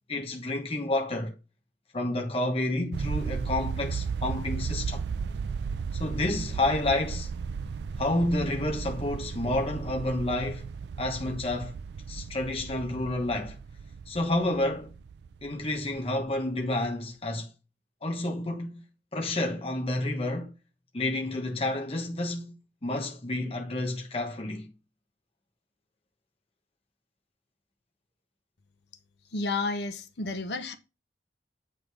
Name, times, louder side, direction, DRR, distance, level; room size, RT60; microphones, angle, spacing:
voice 1, 0.1-1.3 1.9-5.1 6.0-7.3 8.0-10.6 11.0-11.7 12.1-13.6 14.1-14.9 15.4-17.5 18.0-18.8 19.1-20.5 20.9-22.6 22.8-24.7, left 2 dB, 30° left, 1.0 m, -30 dB
sound 1, 2.9-16.2, right 5 dB, 65° right, 0.4 m, -35 dB
voice 2, 29.3-30.8, left 3 dB, 65° left, 1.0 m, -31 dB
8.3 x 3.8 x 4.7 m
head